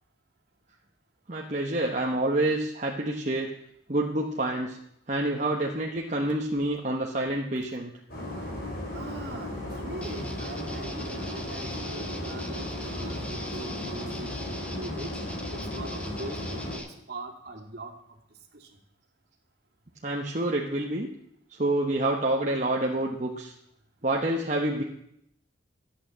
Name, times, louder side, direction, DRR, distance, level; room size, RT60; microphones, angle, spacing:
voice 1, 1.3-3.5 3.9-4.8 5.1-7.9 20.0-21.1 21.6-23.5 24.0-24.8, right 1 dB, 40° right, -1 dB, 1.2 m, -27 dB
sound 1, 8.1-16.8, left 1 dB, 50° left, 4.8 m, -36 dB
voice 2, 8.9-15.2 15.5-17.9 18.5-18.7, right 2 dB, 55° right, 3 dB, 2.3 m, -42 dB
sound 2, 10.0-16.9, equal, 5° left, 1.1 m, -40 dB
13.5 x 8.9 x 7.5 m, 0.76 s
head